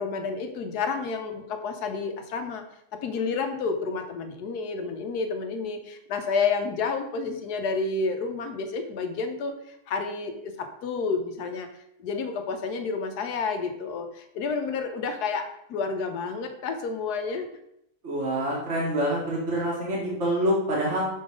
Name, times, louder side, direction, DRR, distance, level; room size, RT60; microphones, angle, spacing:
voice 1, 0.0-2.6 2.9-11.7 12.0-17.5, left 4 dB, 80° left, 6 dB, 1.4 m, -30 dB
voice 2, 18.0-21.0, equal, 50° right, -4 dB, 1.8 m, -26 dB
6.2 x 3.9 x 5.0 m, 0.78 s
omnidirectional pair, 1.7 m